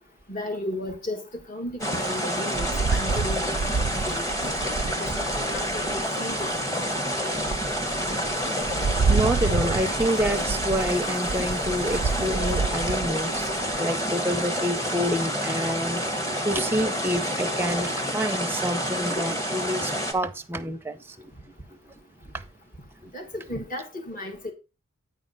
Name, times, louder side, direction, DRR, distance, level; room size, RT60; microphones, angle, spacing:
voice 1, 0.3-4.6 4.9-6.6 23.1-24.5, left 1 dB, 40° left, 1.4 m, -35 dB
sound 1, 1.8-20.1, equal, 15° left, 1.0 m, -28 dB
Rain, 2.5-6.1 6.6-6.7 7.2-13.8, right 5 dB, 80° right, 0.4 m, -29 dB
voice 2, 9.1-16.0 16.4-21.3 21.7-21.8 22.3-22.4 23.0-23.1, equal, 10° right, 0.5 m, -28 dB
9.5 x 4.2 x 5.3 m
head